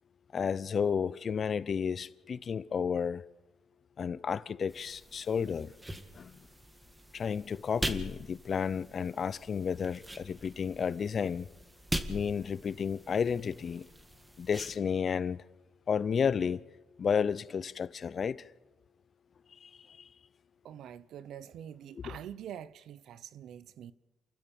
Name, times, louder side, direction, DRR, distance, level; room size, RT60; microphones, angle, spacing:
voice 1, 0.3-3.2 4.0-5.7 6.1-6.5 7.1-11.5 12.1-13.9 14.4-15.4 15.9-16.6 17.0-18.5 19.5-20.1 21.9-22.0, left 6 dB, 50° left, 0.7 m, -32 dB
sound 1, 4.7-14.8, right 1 dB, 10° right, 2.0 m, -42 dB
voice 2, 20.6-23.9, right 10 dB, 75° right, 0.8 m, -45 dB
28.5 x 14.5 x 7.0 m
cardioid pair, 90°, 0 cm